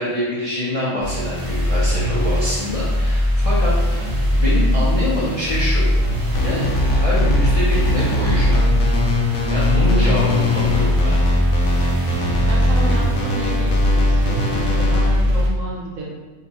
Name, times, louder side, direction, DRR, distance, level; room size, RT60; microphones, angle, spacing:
voice 1, 0.0-4.0 4.3-5.9 6.4-8.6 9.5-11.2, left 1 dB, 45° left, -9 dB, 0.4 m, -25 dB
sound 1, 1.0-15.5, left 1 dB, 35° right, 0.6 m, -20 dB
sound 2, 6.3-15.1, left 1 dB, 70° left, 0.9 m, -23 dB
voice 2, 12.5-16.1, right 2 dB, 75° right, -3 dB, 1.1 m, -32 dB
2.8 x 2.3 x 3.9 m, 1.3 s
omnidirectional pair, 1.4 m